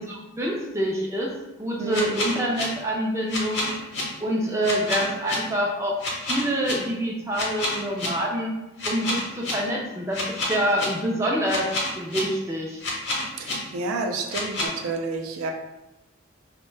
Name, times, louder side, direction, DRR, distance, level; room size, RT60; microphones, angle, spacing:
voice 1, 0.0-3.7 4.2-8.6 8.9-12.8, equal, 15° right, -2 dB, 0.4 m, -26 dB
voice 2, 1.8-2.1 13.4-15.5, right 3 dB, 90° right, 3 dB, 0.4 m, -30 dB
sound 1, 1.9-2.6 3.3-4.0 4.6-5.4 6.0-6.7 7.3-8.1 8.8-9.5 10.1-10.9 11.5-12.2 12.8-13.5 14.3-14.7, left 2 dB, 55° left, 0.8 m, -28 dB
2.6 x 2.1 x 3.1 m, 1.0 s
head